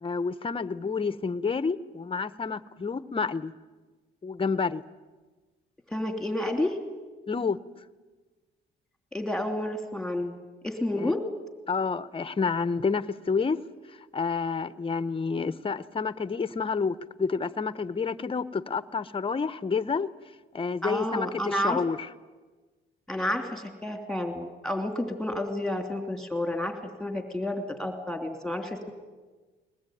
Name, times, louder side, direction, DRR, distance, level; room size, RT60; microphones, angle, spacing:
voice 1, 0.0-3.5 4.2-4.8 7.3-7.6 11.0-11.1 11.7-13.6 14.1-20.1 20.5-22.0, left 5 dB, 25° left, 14 dB, 0.9 m, -29 dB
voice 2, 5.9-6.8 9.1-10.3 10.6-11.3 20.8-21.8 23.1-28.9, left 1 dB, ahead, 4 dB, 3.0 m, -30 dB
21.5 x 19.5 x 9.3 m, 1.3 s
cardioid pair, 90°, 20 cm